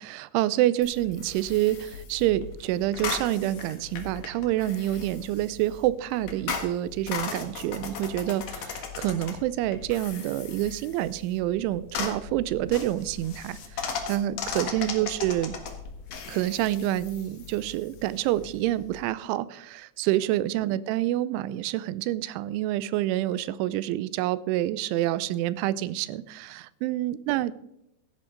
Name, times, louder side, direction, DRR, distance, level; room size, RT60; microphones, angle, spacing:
voice 1, 0.0-15.5 16.3-27.6, right 14 dB, 85° right, 17 dB, 3.0 m, -27 dB
sound 1, 0.8-19.0, left 5 dB, 65° left, 1.6 m, -38 dB
16.0 x 11.0 x 3.9 m, 0.84 s
omnidirectional pair, 5.4 m